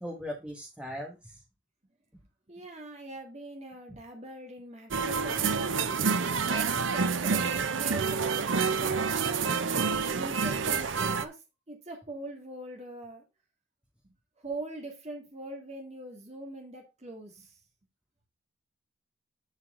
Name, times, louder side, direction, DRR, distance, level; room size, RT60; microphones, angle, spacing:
voice 1, 0.0-1.4, equal, 5° right, -2 dB, 1.9 m, -39 dB
voice 2, 2.5-6.0 6.5-9.6 10.1-11.4 11.7-13.2 14.0-17.5, right 2 dB, 35° right, 1 dB, 2.2 m, -42 dB
sound 1, 4.9-11.3, right 5 dB, 90° right, 0.8 m, -28 dB
11.5 x 4.6 x 3.9 m, 0.26 s
head